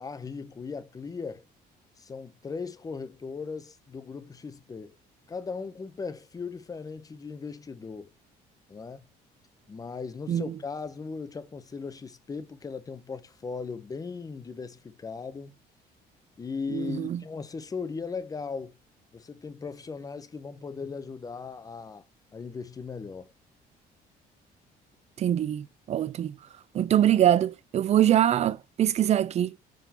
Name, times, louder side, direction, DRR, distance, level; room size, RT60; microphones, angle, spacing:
voice 1, 0.0-1.4 2.0-5.0 5.3-8.1 8.7-9.0 9.7-15.6 16.4-18.7 19.1-22.0 22.3-23.3, left 5 dB, 20° left, 0.7 m, -38 dB
voice 2, 16.7-17.2 25.2-26.4 26.7-29.5, right 11 dB, 40° right, 0.4 m, -24 dB
10.5 x 3.7 x 2.8 m
cardioid pair, 110°, 17 cm